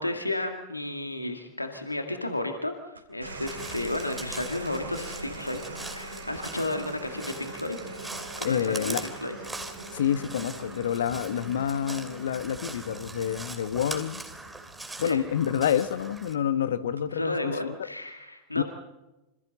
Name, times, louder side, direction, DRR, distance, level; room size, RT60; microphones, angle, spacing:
voice 1, 0.0-5.6 5.9-7.8 8.4-9.4 15.0-15.2 17.1-18.6, left 1 dB, 85° left, 5 dB, 2.1 m, -32 dB
sound 1, 3.0-15.6 16.8-17.2, right 2 dB, 80° right, 3.9 m, -42 dB
Crow, 3.3-16.3, right 2 dB, 5° right, 2.7 m, -42 dB
voice 2, 8.4-9.0 9.9-14.2 15.0-17.8 18.5-18.6, left 9 dB, 60° left, 12 dB, 1.4 m, -28 dB
27.5 x 27.0 x 4.1 m, 1.0 s
figure-of-eight pair, 90°, 0 cm